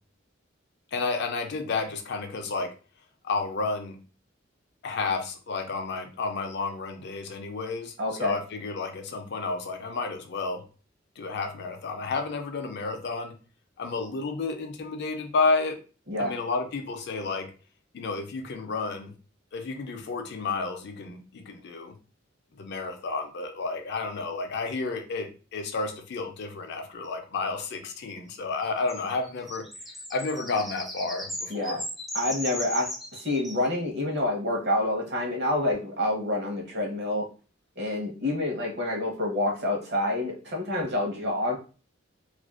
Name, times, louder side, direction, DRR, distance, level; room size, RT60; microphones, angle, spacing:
voice 1, 0.9-2.7 3.2-4.0 4.8-10.6 11.2-13.3 13.8-15.8 16.2-17.5 17.9-19.1 19.5-22.0 22.5-29.7 30.1-31.8, left 3 dB, 60° left, 5 dB, 0.4 m, -31 dB
voice 2, 8.0-8.4 16.1-16.3 31.5-31.8 32.1-37.3 37.8-41.6, left 1 dB, 60° right, 0 dB, 0.8 m, -28 dB
sound 1, 28.6-33.7, left 1 dB, ahead, 0.4 m, -37 dB
2.4 x 2.1 x 2.3 m, 0.35 s
head